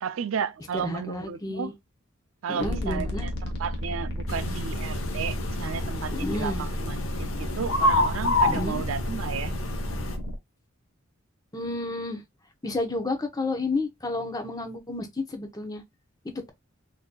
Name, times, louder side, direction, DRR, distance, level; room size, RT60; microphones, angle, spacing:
voice 1, 0.0-1.7 2.4-3.3 3.6-9.5, right 7 dB, 75° right, 0.4 m, -33 dB
voice 2, 0.8-1.7 2.5-3.3 6.1-6.7 8.4-8.8 11.5-12.2 12.6-15.8, left 2 dB, 20° left, 0.6 m, -31 dB
sound 1, 2.6-10.4, equal, 55° left, 0.9 m, -33 dB
sound 2, 4.3-10.2, left 2 dB, 85° left, 0.8 m, -29 dB
3.9 x 2.7 x 2.2 m
head